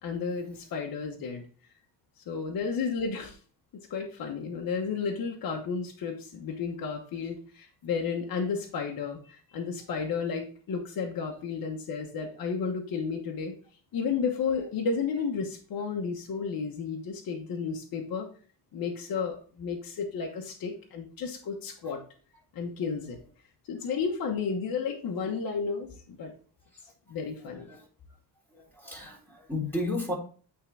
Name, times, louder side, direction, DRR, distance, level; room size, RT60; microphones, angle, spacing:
voice 1, 0.0-1.4 2.3-3.4 3.9-13.5 13.9-18.3 18.7-22.0 22.5-23.2 23.7-26.3 27.1-27.7, left 5 dB, 60° left, 1 dB, 1.2 m, -32 dB
voice 2, 28.8-30.1, left 2 dB, 5° left, -4 dB, 3.7 m, -32 dB
8.6 x 3.7 x 3.4 m, 0.41 s
cardioid pair, 90°, 40 cm